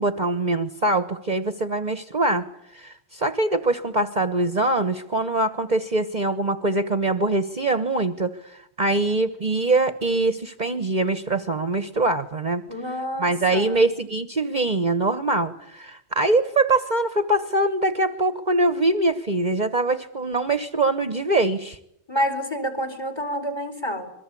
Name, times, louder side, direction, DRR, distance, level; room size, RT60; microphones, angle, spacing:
voice 1, 0.0-2.4 2.7-12.6 13.2-21.8, right 2 dB, 40° right, 10 dB, 1.3 m, -23 dB
voice 2, 12.7-13.8 22.1-24.1, equal, 20° left, 7 dB, 4.8 m, -28 dB
27.0 x 22.5 x 8.5 m, 0.76 s
omnidirectional pair, 1.2 m